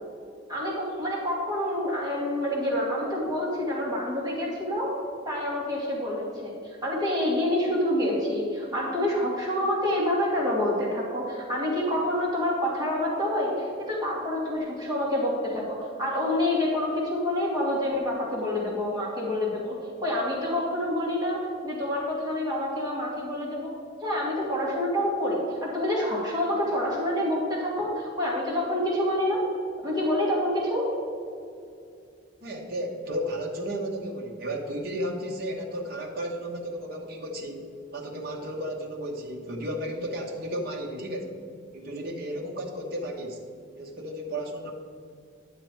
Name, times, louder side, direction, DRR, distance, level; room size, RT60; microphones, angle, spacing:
voice 1, 0.5-5.0 5.2-6.5 6.8-23.7 24.0-29.4 29.8-30.9, left 1 dB, 20° right, -5 dB, 2.3 m, -27 dB
voice 2, 32.4-37.6 37.9-41.4 41.7-43.4 43.8-44.7, equal, 55° right, -1 dB, 1.1 m, -33 dB
10.0 x 6.8 x 4.5 m, 2.4 s
head